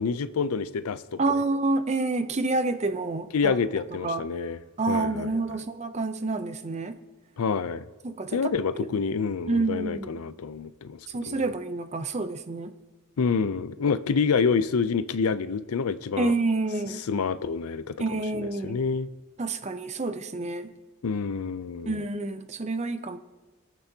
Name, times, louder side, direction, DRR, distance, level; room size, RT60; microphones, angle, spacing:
voice 1, 0.0-1.2 3.3-4.6 4.9-5.6 7.4-7.9 8.3-11.0 11.2-11.5 13.2-16.4 17.1-19.1 21.0-22.0, left 5 dB, 80° left, 0.5 m, -27 dB
voice 2, 1.2-3.6 4.0-4.2 4.8-7.0 8.0-8.4 8.8-8.9 9.5-10.1 11.1-12.7 16.2-17.0 18.0-18.8 19.4-20.7 21.9-23.2, right 3 dB, 30° right, 0.5 m, -28 dB
24.0 x 8.2 x 2.8 m
head